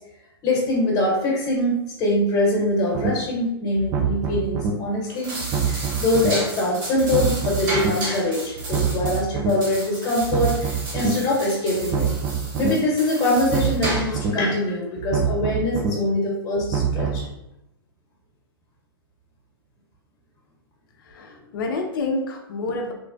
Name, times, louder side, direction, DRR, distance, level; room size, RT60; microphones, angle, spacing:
voice 1, 0.4-12.1 12.5-17.2, left 1 dB, 30° left, -3 dB, 1.1 m, -23 dB
sound 1, 2.9-3.1 3.8-4.7 5.4-6.3 7.0-7.9 8.6-9.5 10.2-11.1 11.8-12.7 13.4-14.3 15.0-15.9 16.6-17.2, right 7 dB, 25° right, 0.3 m, -25 dB
sound 2, 5.0-14.3, right 1 dB, 50° right, 1.4 m, -33 dB
voice 2, 21.0-22.9, left 3 dB, 60° left, 2 dB, 0.5 m, -28 dB
3.1 x 2.1 x 2.5 m, 0.86 s
hypercardioid pair, 115°, 13 cm